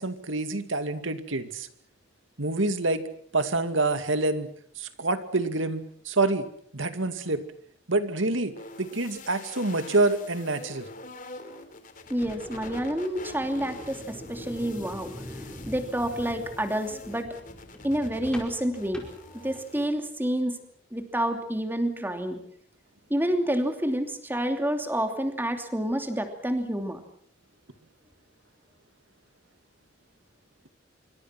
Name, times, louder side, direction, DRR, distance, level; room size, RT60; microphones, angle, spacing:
voice 1, 0.0-1.7 2.4-3.1 3.3-4.5 4.8-6.4 6.7-7.4 7.9-10.9, right 2 dB, 85° right, 9 dB, 2.3 m, -27 dB
sound 1, 8.6-19.9, left 3 dB, 45° left, 3.2 m, -46 dB
sound 2, 12.0-19.9, left 1 dB, 5° left, 4.8 m, -44 dB
voice 2, 12.1-15.1 15.7-17.4 17.8-19.0 19.3-20.6 20.9-22.4 23.1-27.0, equal, 10° right, 6 dB, 2.9 m, -28 dB
26.5 x 24.5 x 6.0 m, 0.62 s
head